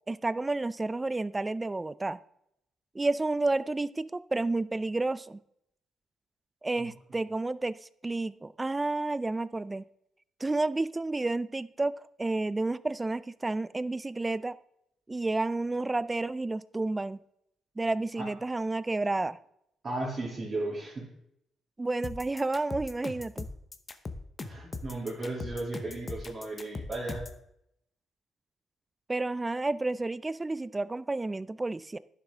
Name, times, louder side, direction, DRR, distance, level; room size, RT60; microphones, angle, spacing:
voice 1, 0.1-2.2 2.9-5.4 6.6-7.8 8.0-9.8 10.4-14.6 15.1-17.2 17.8-19.4 21.8-23.5 29.1-32.0, right 2 dB, 20° right, 17 dB, 0.4 m, -30 dB
voice 2, 19.8-21.1 24.4-27.2, right 2 dB, 40° right, -7 dB, 2.8 m, -35 dB
sound 1, 22.0-27.4, left 3 dB, 30° left, 0.8 m, -39 dB
11.0 x 6.5 x 3.6 m, 0.76 s
cardioid pair, 90°, 0 cm